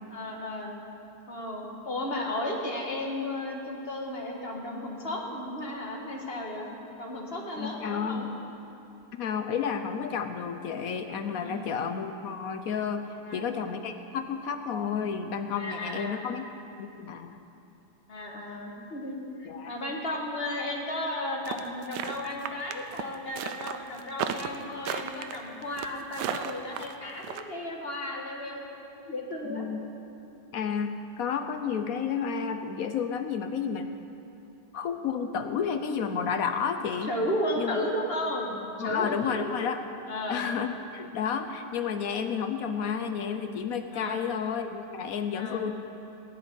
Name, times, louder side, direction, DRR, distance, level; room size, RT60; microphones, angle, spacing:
voice 1, 0.1-0.7 1.3-6.7 7.0-8.3 11.3-11.6 13.1-13.5 15.6-16.2 18.1-28.8 29.1-29.6 37.1-39.6 40.1-40.4 43.9-44.2 45.3-45.7, left 1 dB, 35° left, 0 dB, 1.7 m, -34 dB
voice 2, 7.6-8.4 9.1-16.4 16.8-17.4 19.5-19.7 29.5-29.8 30.5-33.9 34.7-37.1 37.6-37.8 38.8-39.8 40.3-45.7, left 6 dB, 65° left, 8 dB, 1.0 m, -31 dB
sound 1, 21.5-27.4, right 9 dB, 75° right, 1.2 m, -34 dB
16.5 x 5.8 x 9.8 m, 2.9 s
omnidirectional pair, 2.0 m